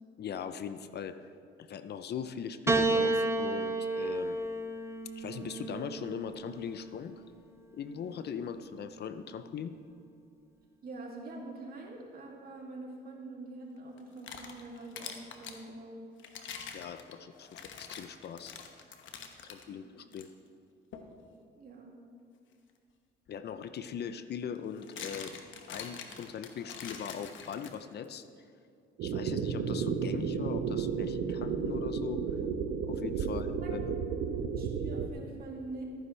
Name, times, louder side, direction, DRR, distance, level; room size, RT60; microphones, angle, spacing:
voice 1, 0.2-1.3 1.6-4.4 5.2-7.1 7.7-9.7 16.7-18.5 19.4-20.3 23.3-25.3 25.7-28.2 29.0-32.2 32.8-34.0, left 7 dB, 55° left, 11 dB, 0.6 m, -40 dB
Piano, 2.7-7.2 8.2-8.9, right 2 dB, 15° right, 0.7 m, -32 dB
voice 2, 10.8-16.0 19.7-19.8 21.6-21.9 33.2-33.7 34.5-35.8, right 2 dB, 50° right, -2 dB, 2.4 m, -45 dB
sound 1, 14.0-15.6 16.2-19.6 20.1-20.3 20.9-21.1 23.3-23.4 24.6-28.1, left 7 dB, 75° left, 1.0 m, -45 dB
sound 2, 29.0-35.1, right 6 dB, 80° right, 0.8 m, -33 dB
14.0 x 9.8 x 3.3 m, 2.4 s
cardioid pair, 90°, 20 cm